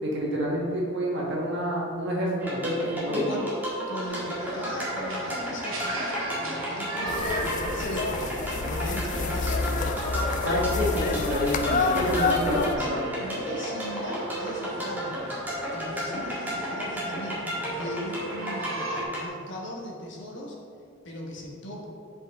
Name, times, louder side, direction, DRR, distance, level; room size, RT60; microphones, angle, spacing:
voice 1, 0.0-3.3 10.4-13.0, equal, 60° right, -4 dB, 1.5 m, -28 dB
sound 1, 2.4-19.3, equal, 10° right, 1.7 m, -33 dB
voice 2, 3.9-8.2 8.6-9.9 10.9-11.3 12.8-15.4 15.7-20.6 21.0-21.8, equal, 60° left, -2 dB, 1.4 m, -39 dB
sound 2, 4.0-19.0, right 1 dB, 80° right, 1.2 m, -38 dB
sound 3, 7.1-12.8, left 4 dB, 40° left, 0.4 m, -28 dB
7.9 x 4.9 x 3.7 m, 2.3 s
head